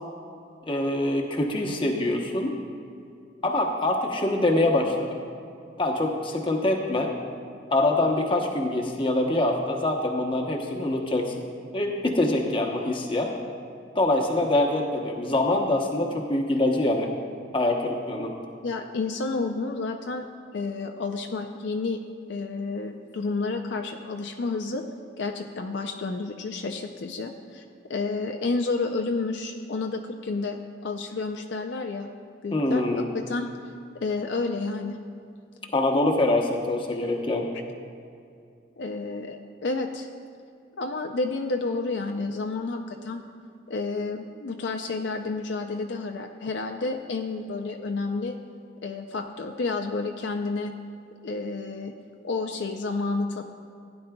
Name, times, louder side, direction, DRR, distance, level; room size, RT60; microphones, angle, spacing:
voice 1, 0.7-2.6 3.4-5.2 5.8-7.1 7.7-11.3 11.7-13.3 13.9-17.1 17.5-18.3 32.5-33.1 35.7-37.5, left 2 dB, 25° left, 1 dB, 0.9 m, -24 dB
voice 2, 18.6-20.3 20.5-22.0 22.3-24.8 25.2-27.6 27.9-32.1 32.4-32.9 33.1-33.5 33.9-35.0 38.8-40.1 40.8-43.2 43.7-48.4 48.8-50.7 51.2-51.9 52.2-53.4, left 3 dB, 65° left, 4 dB, 0.5 m, -30 dB
15.5 x 9.9 x 2.3 m, 2.4 s
head